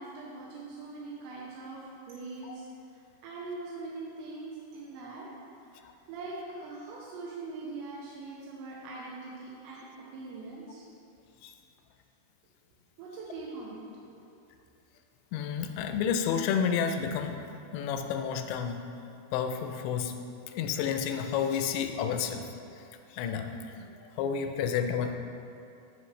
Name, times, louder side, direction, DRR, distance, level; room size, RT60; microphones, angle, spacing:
voice 1, 0.0-2.7 3.2-5.3 5.6-5.7 6.1-9.9 10.1-10.9 13.0-14.2, right 3 dB, 85° right, -5 dB, 3.1 m, -42 dB
voice 2, 15.3-17.4 17.7-18.8 19.3-20.1 20.5-22.5 22.8-22.9 23.1-25.2, left 7 dB, 85° left, 6 dB, 2.7 m, -30 dB
12.5 x 5.8 x 3.2 m, 2.6 s
omnidirectional pair, 5.1 m